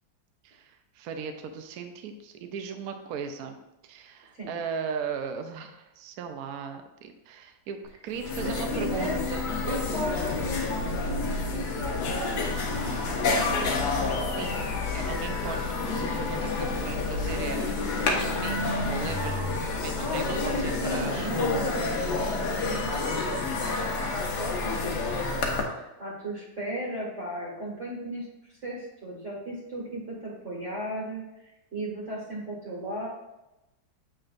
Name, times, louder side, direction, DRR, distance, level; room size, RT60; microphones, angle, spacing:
voice 1, 0.4-3.6 3.9-9.5 9.9-10.2 13.9-14.0 14.4-14.6 14.9-17.7 18.1-18.6 18.9-21.5, right 6 dB, 70° right, 6 dB, 1.0 m, -37 dB
sound 1, 7.9-8.0 8.1-25.6, left 3 dB, 70° left, 1.4 m, -29 dB
voice 2, 8.4-13.1 17.2-17.4 20.0-28.3 28.6-31.2 31.7-33.1, equal, 45° right, -6 dB, 1.7 m, -36 dB
sound 2, 12.2-19.6, left 1 dB, 50° left, 1.0 m, -37 dB
7.6 x 5.8 x 2.5 m, 0.95 s
omnidirectional pair, 1.9 m